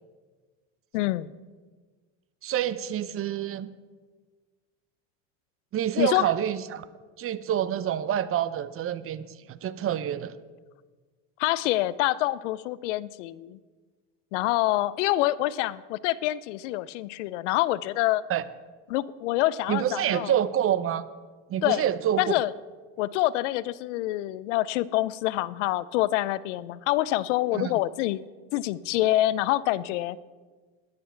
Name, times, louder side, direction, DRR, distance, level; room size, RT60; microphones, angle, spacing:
voice 1, 0.9-1.3 6.0-6.3 11.4-13.6 14.3-18.2 18.9-20.3 21.6-21.8 22.2-22.5 23.0-28.2 28.5-30.2, left 16 dB, 85° left, 19 dB, 0.6 m, -26 dB
voice 2, 2.4-3.7 5.7-6.8 7.2-10.3 18.3-18.4 19.7-21.1 21.5-22.3 27.5-27.7, right 10 dB, 40° right, 15 dB, 0.7 m, -27 dB
14.0 x 10.5 x 4.5 m, 1.4 s
supercardioid pair, 105°, 36 cm